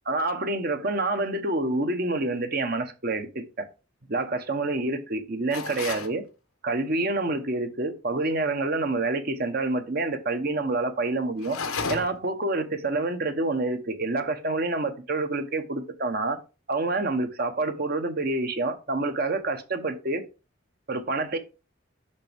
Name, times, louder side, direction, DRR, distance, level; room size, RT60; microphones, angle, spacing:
voice 1, 0.1-3.7 4.1-6.3 6.6-11.6 11.9-16.4 16.7-20.2 20.9-21.4, right 2 dB, 45° right, 1.0 m, -27 dB
sound 1, 5.5-6.1 11.4-12.3, left 4 dB, 85° left, 0.9 m, -32 dB
6.6 x 5.9 x 3.5 m
head